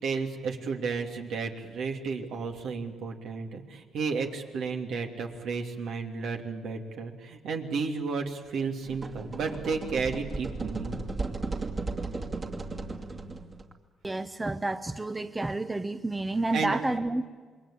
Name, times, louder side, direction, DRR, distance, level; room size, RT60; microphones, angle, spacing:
voice 1, 0.0-11.0 16.5-16.8, right 5 dB, 75° right, 2 dB, 2.9 m, -32 dB
sound 1, 8.8-13.7, right 3 dB, 35° right, 2.5 m, -35 dB
voice 2, 14.0-17.3, right 2 dB, 15° right, 10 dB, 0.9 m, -30 dB
27.0 x 21.5 x 8.6 m, 1.5 s
cardioid pair, 90°, 0 cm